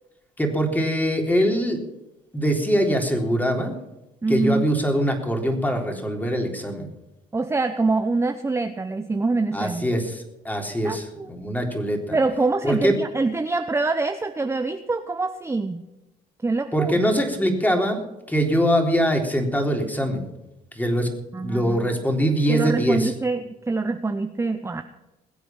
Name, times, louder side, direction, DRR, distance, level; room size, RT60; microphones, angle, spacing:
voice 1, 0.4-1.8 2.3-3.8 4.3-6.9 9.5-12.2 12.6-12.9 16.7-18.0 18.3-20.2 20.7-21.1 21.4-23.1, equal, 10° left, 3 dB, 3.8 m, -23 dB
voice 2, 4.2-4.7 7.3-9.9 10.8-11.3 12.1-15.8 16.4-17.1 21.3-21.9 22.5-24.8, right 3 dB, 15° right, 8 dB, 0.9 m, -25 dB
21.0 x 8.2 x 5.9 m, 0.97 s
supercardioid pair, 80°, 17 cm